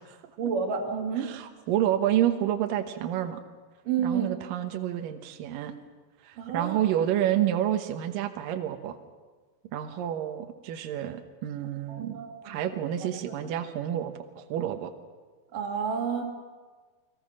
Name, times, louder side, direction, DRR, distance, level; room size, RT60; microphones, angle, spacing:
voice 1, 0.4-1.3 3.9-4.3 6.4-6.8 11.9-12.6 15.5-16.2, right 6 dB, 50° right, 1 dB, 3.9 m, -30 dB
voice 2, 1.2-3.4 4.0-5.7 6.2-9.0 9.7-14.9, right 11 dB, 85° right, 6 dB, 2.0 m, -29 dB
29.5 x 20.5 x 6.3 m, 1.4 s
omnidirectional pair, 5.6 m